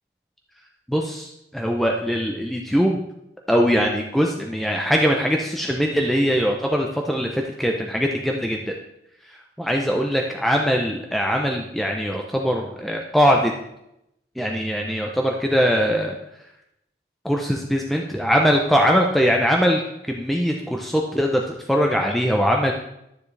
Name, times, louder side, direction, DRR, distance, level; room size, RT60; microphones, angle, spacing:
voice 1, 0.9-3.0 3.5-8.7 9.2-13.5 14.4-16.1 17.2-22.7, equal, ahead, 1 dB, 0.6 m, -21 dB
12.0 x 7.3 x 3.3 m, 0.83 s
head